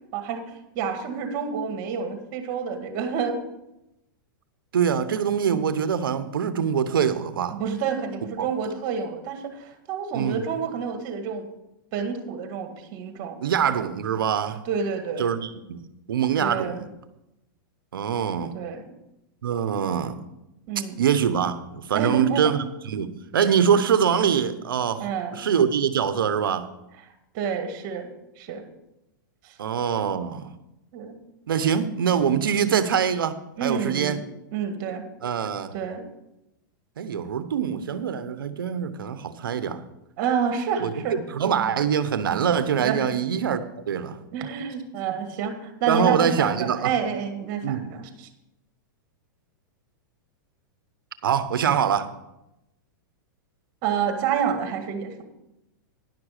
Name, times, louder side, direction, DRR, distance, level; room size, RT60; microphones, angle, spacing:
voice 1, 0.1-3.5 7.5-11.5 11.9-13.4 14.7-15.3 16.4-16.8 18.5-18.9 20.7-21.0 21.9-22.5 25.0-25.5 27.3-28.1 28.4-28.7 29.4-29.6 30.9-31.2 32.6-32.8 33.6-34.2 34.5-35.1 35.7-36.1 40.2-41.2 42.8-43.2 44.3-48.3 53.8-55.2, right 6 dB, 45° right, 7 dB, 1.8 m, -29 dB
voice 2, 4.7-7.6 8.4-8.5 10.1-10.4 13.4-14.6 15.2-15.8 16.1-16.9 17.9-18.5 19.4-20.3 20.8-22.6 22.9-26.7 29.6-30.5 31.5-33.3 33.6-34.2 35.2-35.7 37.0-39.8 40.8-43.6 43.9-44.2 45.9-46.9 47.6-47.9 51.2-52.1, right 8 dB, 90° right, 13 dB, 0.9 m, -24 dB
11.0 x 6.0 x 6.5 m, 0.90 s
hypercardioid pair, 130°, 11 cm